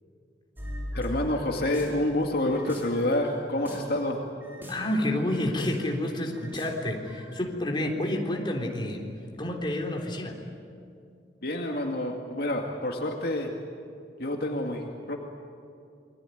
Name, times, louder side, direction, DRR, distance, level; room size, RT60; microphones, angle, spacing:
sound 1, 0.6-2.1 2.5-4.0 4.4-6.0 6.3-7.3, equal, 10° right, 5.9 m, -40 dB
voice 1, 0.9-4.2 11.4-13.5 14.2-15.2, left 1 dB, 60° left, 1 dB, 2.2 m, -28 dB
voice 2, 4.7-9.1 9.4-10.4, left 1 dB, 25° left, 1 dB, 3.7 m, -29 dB
28.0 x 22.5 x 9.4 m, 2.4 s
head